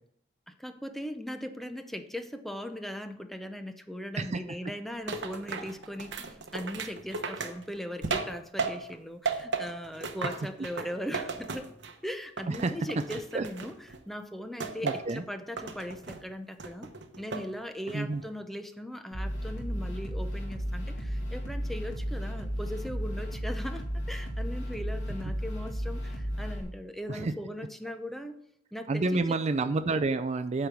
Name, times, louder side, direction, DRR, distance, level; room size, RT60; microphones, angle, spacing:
voice 1, 0.5-11.7 12.0-13.7 14.1-28.4 28.7-29.2, equal, ahead, 7 dB, 0.6 m, -39 dB
sound 1, 5.1-9.0 9.3-12.0 12.4-14.0 14.6-15.2 15.6-16.2 16.6-17.5 17.9-18.3, right 4 dB, 65° right, 1.0 m, -35 dB
voice 2, 14.8-15.2 17.9-18.2 27.1-27.3 28.9-30.7, right 3 dB, 35° right, 9 dB, 0.4 m, -29 dB
sound 2, 19.1-26.6, equal, 85° left, 2.6 m, -34 dB
8.8 x 4.6 x 6.9 m, 0.70 s
head